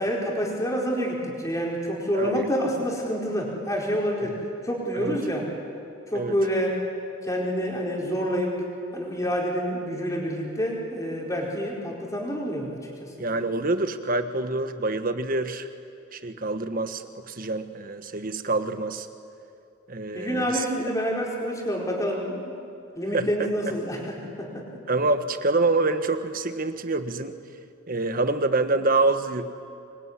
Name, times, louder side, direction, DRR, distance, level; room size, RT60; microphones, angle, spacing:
voice 1, 0.0-4.4 4.6-5.5 6.1-6.8 7.2-8.5 8.9-13.3 20.1-22.5 23.0-24.7, equal, 15° left, -2 dB, 5.0 m, -28 dB
voice 2, 2.1-2.5 4.9-5.2 6.1-6.3 13.2-15.7 16.1-19.1 19.9-20.6 23.1-23.5 24.9-27.3 27.9-29.5, right 2 dB, 45° right, 9 dB, 1.4 m, -26 dB
25.5 x 23.0 x 9.8 m, 2.5 s
head